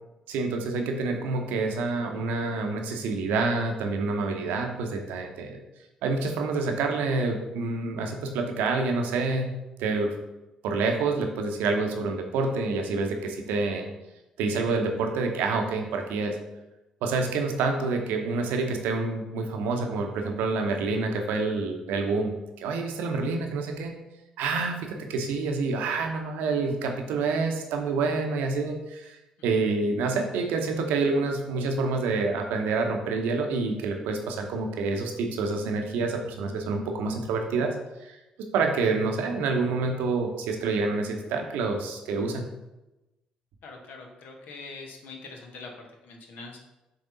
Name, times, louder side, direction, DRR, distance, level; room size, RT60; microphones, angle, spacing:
voice 1, 0.3-5.6 6.0-9.5 9.8-10.2 10.6-13.9 14.4-16.4 17.0-23.9 24.4-29.2 29.4-37.7 38.0-38.2 38.5-42.4, right 3 dB, 65° right, 3 dB, 0.8 m, -27 dB
voice 2, 43.6-46.6, left 3 dB, 60° left, 2 dB, 1.1 m, -43 dB
6.9 x 3.5 x 3.8 m, 0.99 s
figure-of-eight pair, 45°, 3 cm